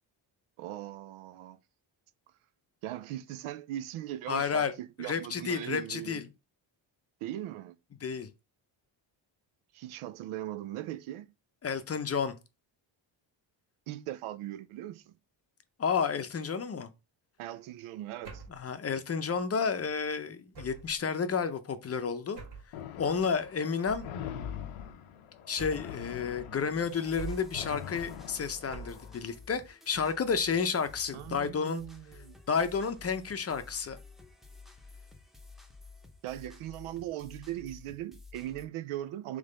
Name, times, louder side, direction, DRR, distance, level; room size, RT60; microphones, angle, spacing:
voice 1, 0.6-1.6 2.8-6.2 7.2-7.8 9.7-11.3 13.9-15.1 17.4-18.4 31.1-32.4 36.2-39.4, right 13 dB, 85° right, 0.6 m, -39 dB
voice 2, 4.3-4.7 5.0-6.2 8.0-8.3 11.6-12.3 15.8-16.9 18.5-22.4 23.0-24.1 25.5-31.8 32.5-34.0, left 6 dB, 30° left, 0.6 m, -31 dB
sound 1, 18.2-18.6 20.5-21.0 22.3-22.7 23.9-24.2 25.6-26.0 27.2-27.6 28.7-29.1, right 5 dB, 60° right, 1.7 m, -43 dB
sound 2, 22.7-29.2, left 8 dB, 90° left, 0.7 m, -43 dB
sound 3, 26.7-38.7, left 3 dB, ahead, 0.7 m, -53 dB
3.7 x 3.2 x 3.8 m
cardioid pair, 100°, 48 cm